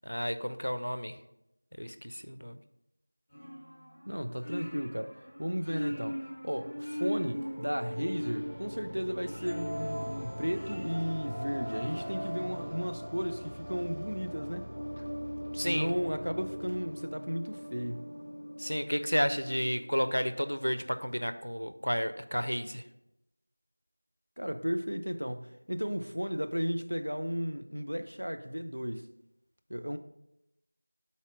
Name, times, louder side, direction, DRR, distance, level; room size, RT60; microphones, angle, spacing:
voice 1, 0.0-1.1 1.8-2.6 15.5-15.9 18.6-22.8, equal, 85° left, 0.5 m, -32 dB
sound 1, 3.3-13.1, equal, 10° left, 0.8 m, -40 dB
voice 2, 4.1-14.7 15.6-18.1 24.4-29.1 29.7-30.0, equal, 70° right, 0.5 m, -34 dB
sound 2, 7.2-20.2, equal, 40° right, 1.0 m, -40 dB
5.0 x 4.1 x 5.8 m
figure-of-eight pair, 175°, 0 cm